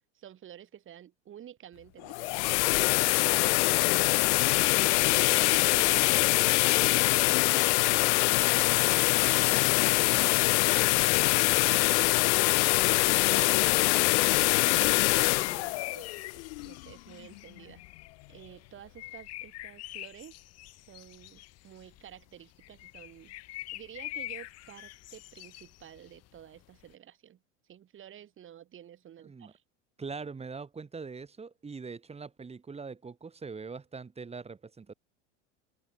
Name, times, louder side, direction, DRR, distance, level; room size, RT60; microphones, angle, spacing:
voice 1, 0.1-2.7 3.0-3.6 4.7-8.8 9.4-12.1 12.8-13.9 14.4-16.3 16.6-17.8 18.3-20.4 20.9-23.3 23.7-27.4 27.7-29.6, right 10 dB, 35° right, 5.2 m, -50 dB
sound 1, 2.0-16.9, left 24 dB, 65° left, 0.8 m, -24 dB
sound 2, 15.3-26.9, left 17 dB, 40° left, 1.8 m, -45 dB
voice 2, 29.2-29.5 30.0-34.9, right 4 dB, 15° right, 7.1 m, -42 dB
supercardioid pair, 115°, 37 cm